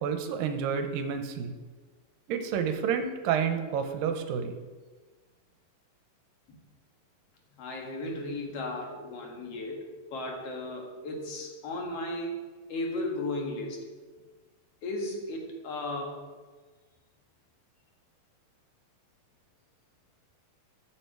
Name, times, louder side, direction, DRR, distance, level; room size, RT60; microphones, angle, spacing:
voice 1, 0.0-1.5 2.3-4.5, right 7 dB, 85° right, 7 dB, 2.6 m, -29 dB
voice 2, 7.6-12.3 12.7-13.9 14.8-16.2, left 2 dB, 50° left, 1 dB, 2.3 m, -35 dB
13.0 x 7.7 x 4.6 m, 1.4 s
omnidirectional pair, 4.0 m